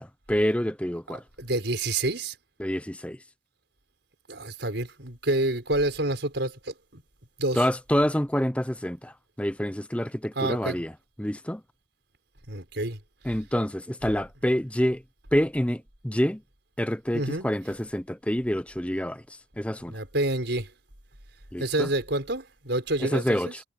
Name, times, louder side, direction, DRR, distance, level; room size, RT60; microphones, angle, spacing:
voice 1, 0.0-1.2 2.6-3.2 7.5-10.9 11.2-11.6 13.2-15.0 15.3-16.4 16.8-20.0 21.5-21.9 23.1-23.6, equal, 5° left, 0.8 m, -27 dB
voice 2, 1.4-2.3 4.3-7.0 7.4-7.6 10.3-10.8 12.5-13.0 17.1-17.5 19.9-20.7 21.6-23.5, right 1 dB, 65° right, 4.9 m, -28 dB
head